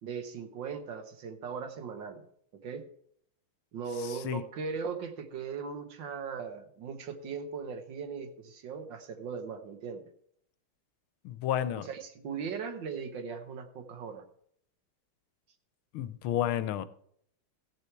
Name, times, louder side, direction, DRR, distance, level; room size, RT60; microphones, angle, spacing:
voice 1, 0.0-2.2 2.5-2.9 3.7-10.0 11.7-14.3, right 5 dB, 65° right, 1.6 m, -39 dB
voice 2, 4.0-4.4 11.2-11.9 15.9-16.9, left 11 dB, 85° left, 1.6 m, -31 dB
15.0 x 6.8 x 4.5 m
omnidirectional pair, 2.3 m